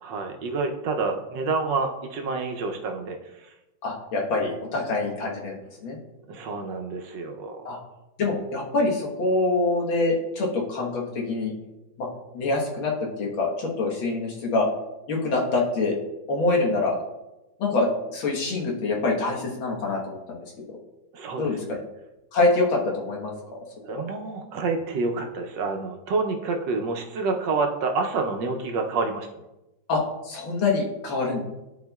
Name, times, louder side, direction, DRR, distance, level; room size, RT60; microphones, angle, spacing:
voice 1, 0.0-3.5 6.3-7.7 21.1-21.8 23.8-29.3, right 3 dB, 70° right, 4 dB, 1.3 m, -28 dB
voice 2, 3.8-5.6 5.8-6.0 7.7-7.8 8.2-11.5 12.0-12.1 12.3-12.9 13.2-14.7 15.1-16.0 16.3-17.0 17.6-20.4 21.4-21.8 22.3-23.3 23.9-24.1 29.9-31.4, left 3 dB, 85° left, -2 dB, 2.1 m, -25 dB
11.5 x 4.4 x 2.3 m, 0.97 s
omnidirectional pair, 2.1 m